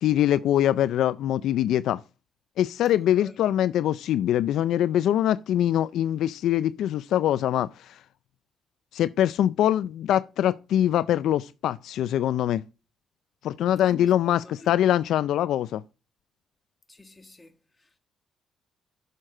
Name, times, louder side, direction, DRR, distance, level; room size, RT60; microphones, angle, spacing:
voice 1, 0.0-2.0 2.6-8.0 8.9-12.6 13.4-15.8, left 11 dB, 80° left, 0.3 m, -23 dB
voice 2, 13.8-14.1 14.4-14.8 16.9-18.0, left 2 dB, 15° left, 1.5 m, -48 dB
11.0 x 6.6 x 3.7 m
cardioid pair, 90°, 0 cm